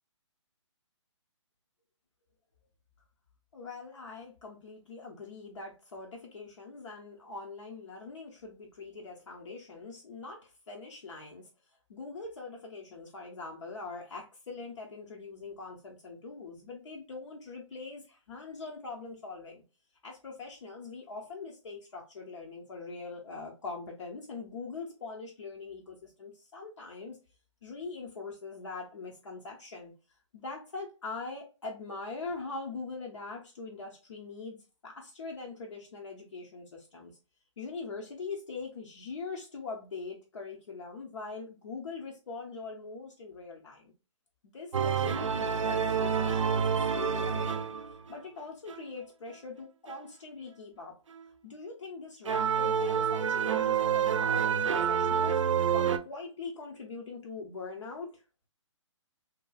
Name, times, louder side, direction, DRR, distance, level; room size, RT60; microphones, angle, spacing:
voice 1, 3.5-11.5 11.9-19.6 20.0-27.2 27.6-29.9 30.3-34.6 34.8-37.1 37.6-43.9 44.4-46.6 46.9-47.7 48.1-51.0 51.4-55.4 55.7-58.2, left 4 dB, 70° left, -1 dB, 0.8 m, -42 dB
sound 1, 44.7-48.1 48.7-48.8 49.9-50.0 52.3-56.0, right 7 dB, 75° right, 0.4 m, -28 dB
2.9 x 2.3 x 2.2 m, 0.30 s
figure-of-eight pair, 135°, 16 cm